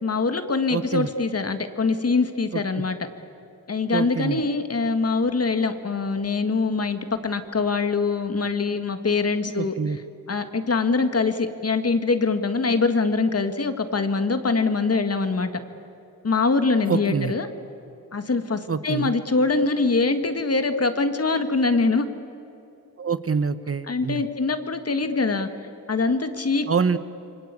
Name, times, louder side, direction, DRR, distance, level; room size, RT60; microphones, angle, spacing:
voice 1, 0.0-3.0 3.7-9.7 10.3-15.5 16.2-17.5 18.1-22.1 23.9-25.5 25.9-26.7, left 4 dB, 45° left, 9 dB, 1.9 m, -23 dB
voice 2, 0.7-1.1 2.5-2.6 3.9-4.4 9.5-10.0 16.9-17.3 18.7-19.1 23.0-24.2 26.7-27.0, right 5 dB, 40° right, 13 dB, 1.0 m, -25 dB
28.0 x 24.5 x 8.4 m, 2.9 s
wide cardioid pair, 105°, 34 cm